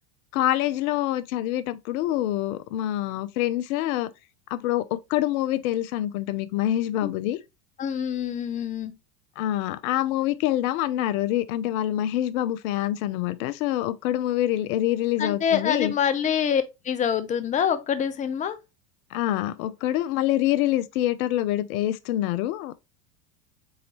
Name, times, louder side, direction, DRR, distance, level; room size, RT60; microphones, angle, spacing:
voice 1, 0.3-4.1 4.5-7.4 9.4-15.9 19.1-22.7, left 13 dB, 60° left, 0.6 m, -26 dB
voice 2, 7.8-8.9 15.2-18.6, left 8 dB, 15° left, 0.4 m, -25 dB
3.9 x 3.9 x 3.1 m
hypercardioid pair, 95°, 49 cm